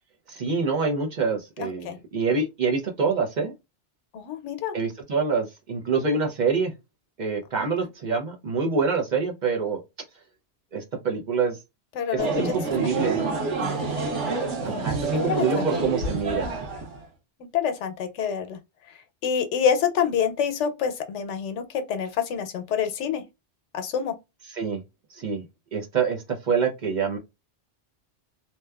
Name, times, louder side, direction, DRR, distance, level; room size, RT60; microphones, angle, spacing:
voice 1, 0.3-3.5 4.7-6.7 7.2-9.8 10.7-11.6 12.1-13.4 14.6-16.5 24.5-24.8 25.1-25.5 25.7-27.2, right 5 dB, 50° right, 0.7 m, -26 dB
voice 2, 1.6-2.0 4.1-4.8 7.6-7.7 11.9-12.5 13.6-13.9 14.7-14.9 15.1-15.6 17.5-18.6 19.2-23.2 23.7-24.1, left 7 dB, 90° left, 0.9 m, -27 dB
sound 1, 12.2-17.0, right 3 dB, 90° right, 1.1 m, -28 dB
2.8 x 2.1 x 2.2 m
omnidirectional pair, 1.2 m